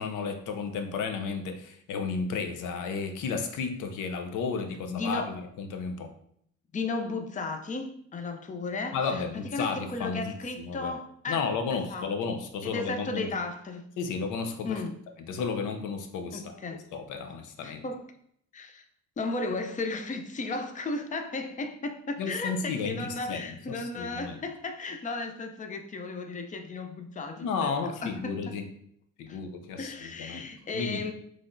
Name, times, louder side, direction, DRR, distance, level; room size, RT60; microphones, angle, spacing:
voice 1, 0.0-6.1 8.9-10.9 11.3-13.3 14.0-14.8 15.3-16.5 16.9-17.8 22.2-24.4 27.4-28.7 29.2-30.5 30.7-31.0, left 5 dB, 85° left, 0.7 m, -33 dB
voice 2, 4.9-5.3 6.7-12.1 12.6-13.9 14.6-14.9 16.3-16.8 17.6-18.0 18.5-18.9 19.2-27.7 28.0-28.4 29.3-29.4 29.8-31.1, left 3 dB, 25° left, 0.6 m, -35 dB
5.7 x 3.3 x 2.6 m
cardioid pair, 90°, 30 cm